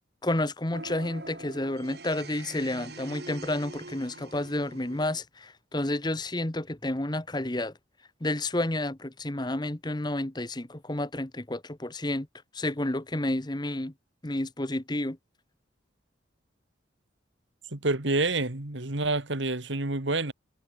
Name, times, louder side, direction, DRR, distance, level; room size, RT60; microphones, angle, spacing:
voice 1, 0.2-7.7 8.2-12.3 12.5-13.9 14.2-15.2, left 1 dB, 20° left, 1.1 m, -30 dB
sound 1, 0.7-5.2, right 2 dB, 55° right, 4.6 m, -44 dB
voice 2, 17.7-20.3, right 2 dB, 70° right, 2.2 m, -28 dB
head